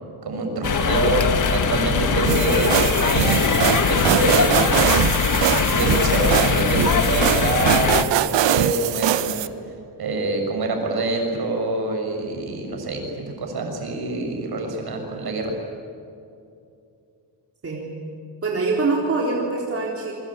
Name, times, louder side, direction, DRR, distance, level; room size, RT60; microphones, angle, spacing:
voice 1, 0.2-4.9 5.7-9.5 10.0-15.5, right 2 dB, 60° right, 3 dB, 6.3 m, -25 dB
sound 1, 0.6-8.0, left 6 dB, 45° left, 1.7 m, -21 dB
sound 2, 2.3-9.5, right 12 dB, 90° right, 1.0 m, -22 dB
voice 2, 18.4-20.1, right 3 dB, 30° right, -2 dB, 3.9 m, -24 dB
28.5 x 23.5 x 8.7 m, 2.6 s
wide cardioid pair, 140°, 43 cm